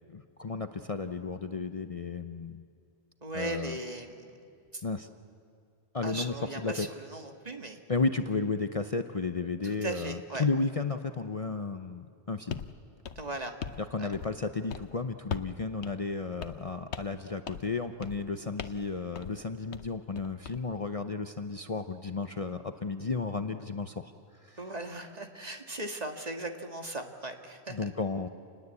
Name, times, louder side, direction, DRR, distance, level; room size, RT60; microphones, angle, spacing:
voice 1, 0.1-2.6 3.3-3.8 4.8-5.1 5.9-6.9 7.9-12.7 13.9-24.1 24.4-24.6 27.7-28.3, left 4 dB, 35° left, 7 dB, 0.7 m, -33 dB
voice 2, 3.2-4.4 4.7-4.8 6.0-7.8 9.6-10.4 13.2-13.5 14.0-14.1 24.6-27.9, right 2 dB, 35° right, 4 dB, 1.9 m, -38 dB
sound 1, 12.5-12.7 13.0-13.8 14.1-14.4 14.7-14.9 15.3-15.6 15.8-15.9 16.4-16.7 16.9-17.2 17.5-17.7 18.0-18.2 18.6-18.9 19.2-19.4 19.7-20.6, left 7 dB, 80° left, 1.2 m, -39 dB
28.0 x 20.5 x 8.3 m, 2.4 s
omnidirectional pair, 1.1 m